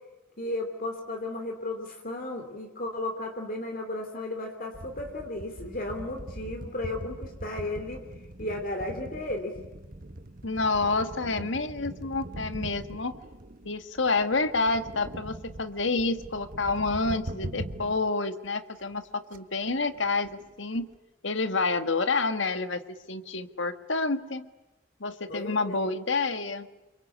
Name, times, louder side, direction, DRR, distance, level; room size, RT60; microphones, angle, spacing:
voice 1, 0.4-8.0 8.4-9.5 25.3-25.9, left 2 dB, 45° left, 4 dB, 3.1 m, -34 dB
sound 1, 4.7-18.0 18.5-18.6 18.8-19.0 19.3-19.4 19.6-21.0, right 1 dB, 45° right, 1.4 m, -42 dB
voice 2, 10.4-13.2 13.6-20.9 21.2-24.5 25.0-26.7, left 3 dB, 65° left, 9 dB, 1.7 m, -28 dB
28.5 x 24.0 x 8.6 m, 1.0 s
head